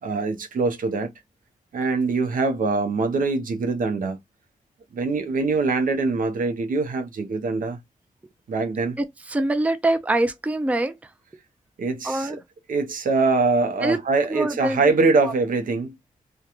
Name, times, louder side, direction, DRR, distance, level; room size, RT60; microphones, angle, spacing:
voice 1, 0.0-1.1 1.7-4.2 4.9-7.8 8.5-9.0 11.8-12.4 12.7-15.9, right 3 dB, 75° right, 0.6 m, -23 dB
voice 2, 9.0-10.9 12.0-12.4 13.8-14.0 14.3-14.9 15.2-15.3, right 2 dB, 10° right, 0.4 m, -24 dB
2.8 x 2.2 x 2.3 m
cardioid pair, 80°, 14 cm